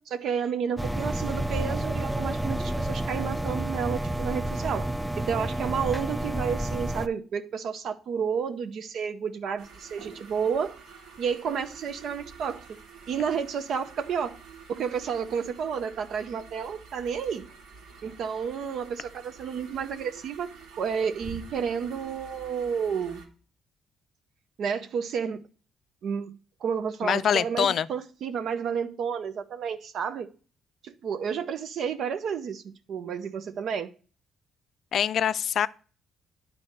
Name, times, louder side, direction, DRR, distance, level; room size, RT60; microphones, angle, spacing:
voice 1, 0.0-4.9 5.2-10.8 11.2-12.6 13.1-14.4 14.7-17.5 18.0-23.2 24.6-25.5 26.0-30.3 30.8-33.9, right 7 dB, 65° right, 0.7 m, -31 dB
sound 1, 0.8-7.1, right 1 dB, 5° right, 0.4 m, -30 dB
sound 2, 9.6-23.3, right 5 dB, 85° right, 2.5 m, -48 dB
voice 2, 27.0-27.9 34.9-35.7, left 8 dB, 55° left, 0.4 m, -24 dB
9.8 x 4.2 x 6.5 m
cardioid pair, 120°, 0 cm